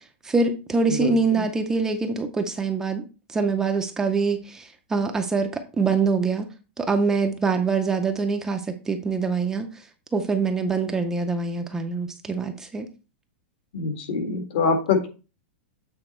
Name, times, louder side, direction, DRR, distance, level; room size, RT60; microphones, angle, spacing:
voice 1, 0.2-3.0 3.3-6.5 6.8-9.7 10.1-12.9, right 4 dB, 10° right, 5 dB, 0.4 m, -24 dB
voice 2, 0.9-1.4 10.6-10.7 13.7-15.1, left 4 dB, 55° left, 5 dB, 1.8 m, -25 dB
8.0 x 4.2 x 4.3 m, 0.32 s
supercardioid pair, 165°, 6 cm